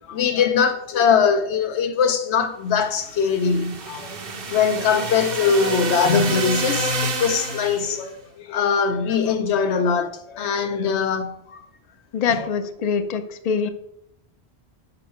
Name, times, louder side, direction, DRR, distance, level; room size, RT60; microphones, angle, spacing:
voice 1, 0.1-4.1 4.5-11.6 12.3-12.5, left 6 dB, 90° left, 1.0 m, -21 dB
sound 1, 3.0-8.0, right 2 dB, 60° right, 1.0 m, -28 dB
voice 2, 12.1-13.7, left 6 dB, 50° left, 0.5 m, -24 dB
5.4 x 3.9 x 5.6 m
omnidirectional pair, 1.1 m